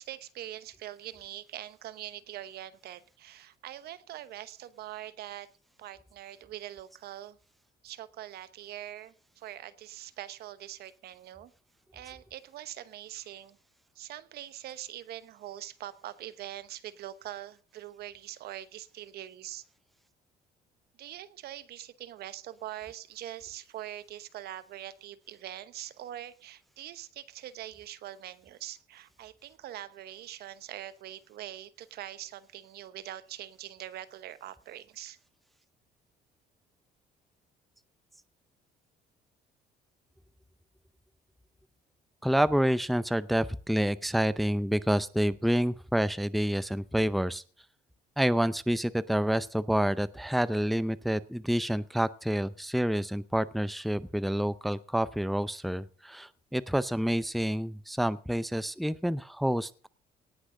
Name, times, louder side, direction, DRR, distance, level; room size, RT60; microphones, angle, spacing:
voice 1, 0.0-5.5 5.8-7.4 7.8-11.5 11.9-13.6 13.9-19.6 21.0-35.2, right 13 dB, 70° right, 15 dB, 1.0 m, -43 dB
voice 2, 42.2-47.4 48.2-59.9, equal, ahead, 16 dB, 0.6 m, -28 dB
18.5 x 6.2 x 6.3 m, 0.41 s
cardioid pair, 110°, 17 cm